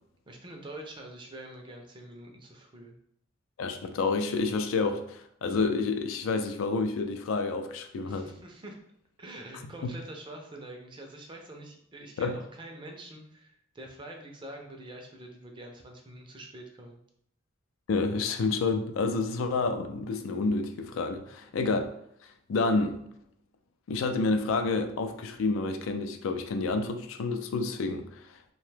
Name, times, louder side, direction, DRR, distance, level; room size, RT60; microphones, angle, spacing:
voice 1, 0.3-3.0 8.0-8.8 9.2-17.0, right 1 dB, 25° right, 2 dB, 0.5 m, -45 dB
voice 2, 3.6-8.3 12.2-12.3 17.9-21.9 22.5-23.0 23.9-28.1, left 3 dB, 85° left, 7 dB, 0.4 m, -29 dB
2.8 x 2.2 x 3.2 m, 0.73 s
head